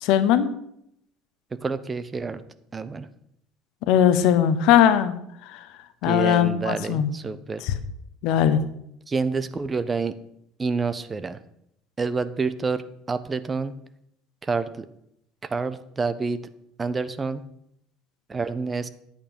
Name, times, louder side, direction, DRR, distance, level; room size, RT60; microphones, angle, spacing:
voice 1, 0.0-0.5 3.9-5.1 6.0-7.1 7.7-7.8 8.2-8.6, left 10 dB, 60° left, 12 dB, 1.0 m, -19 dB
voice 2, 1.5-2.4 2.7-3.1 6.0-7.6 9.1-10.1 10.6-11.4 12.0-13.7 14.4-14.8 15.5-16.4 16.8-17.4 18.3-18.9, right 4 dB, 25° right, 13 dB, 0.9 m, -28 dB
10.5 x 8.5 x 5.4 m, 0.74 s
figure-of-eight pair, 65°, 0 cm